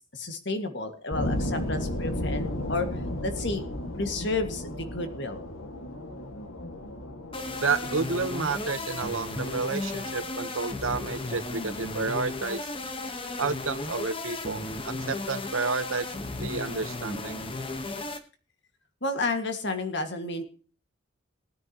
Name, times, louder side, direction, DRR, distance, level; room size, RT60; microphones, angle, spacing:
voice 1, 0.1-3.6 4.0-5.4 19.0-20.4, left 2 dB, 55° left, 6 dB, 1.8 m, -31 dB
sound 1, 1.1-11.9, left 1 dB, 85° left, 1.9 m, -35 dB
sound 2, 7.3-18.2, left 2 dB, 25° left, 1.1 m, -35 dB
voice 2, 7.6-12.7 13.4-16.1 16.4-17.4, right 4 dB, 75° right, 11 dB, 1.0 m, -30 dB
19.5 x 9.5 x 2.9 m, 0.38 s
head